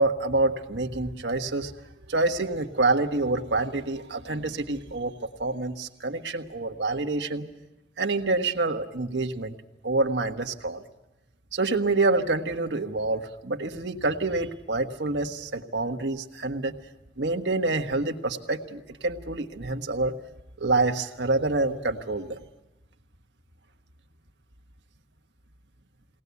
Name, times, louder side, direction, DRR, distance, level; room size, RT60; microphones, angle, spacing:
voice 1, 0.0-1.7 2.1-5.1 5.4-7.5 8.0-9.5 9.8-10.8 11.5-16.7 17.2-20.1 20.6-22.4, right 2 dB, 90° right, 5 dB, 1.4 m, -27 dB
22.0 x 18.5 x 8.3 m, 1.0 s
head